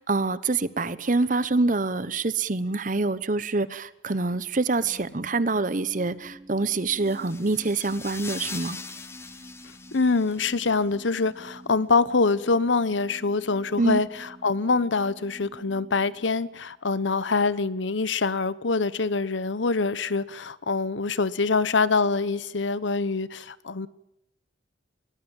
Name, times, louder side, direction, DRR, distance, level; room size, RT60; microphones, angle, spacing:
voice 1, 0.0-8.8 13.8-14.0, right 3 dB, 45° right, 0.9 m, -26 dB
sound 1, 4.8-17.0, right 1 dB, 25° right, 2.4 m, -48 dB
sound 2, 6.8-10.7, left 4 dB, 15° left, 1.1 m, -41 dB
voice 2, 9.9-23.9, left 4 dB, 85° left, 1.0 m, -25 dB
22.0 x 19.5 x 9.0 m
head